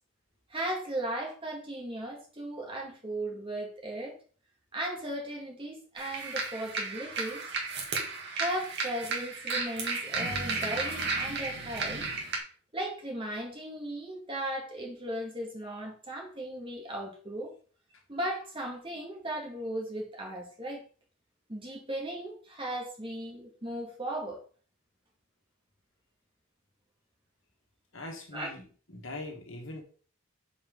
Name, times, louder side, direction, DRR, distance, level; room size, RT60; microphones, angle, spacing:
voice 1, 0.5-4.2 4.7-7.5 8.4-12.4 12.7-17.5 18.1-20.8 21.5-24.4 28.3-28.5, right 1 dB, 25° right, 2.1 m, -37 dB
sound 1, 6.0-12.4, right 3 dB, 50° right, 1.8 m, -33 dB
voice 2, 27.9-29.8, left 2 dB, 60° left, 1.7 m, -42 dB
5.5 x 5.0 x 5.4 m
head